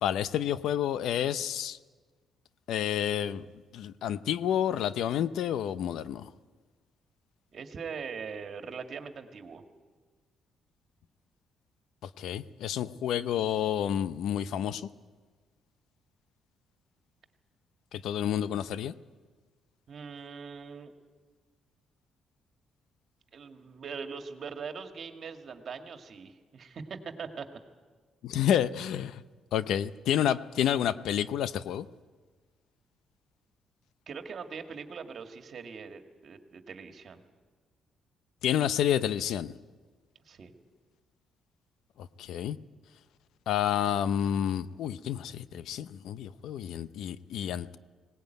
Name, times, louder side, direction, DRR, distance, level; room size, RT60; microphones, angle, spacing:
voice 1, 0.0-1.8 2.7-3.5 3.7-6.3 12.2-14.8 17.9-18.9 28.2-29.2 29.5-31.9 38.4-39.5 42.2-42.6 43.5-47.8, left 10 dB, 80° left, 15 dB, 0.7 m, -29 dB
voice 2, 7.5-9.6 19.9-20.9 23.3-27.5 34.1-37.2 40.3-40.5, right 5 dB, 55° right, 6 dB, 2.1 m, -41 dB
19.5 x 18.5 x 9.2 m, 1.4 s
cardioid pair, 90°, 0 cm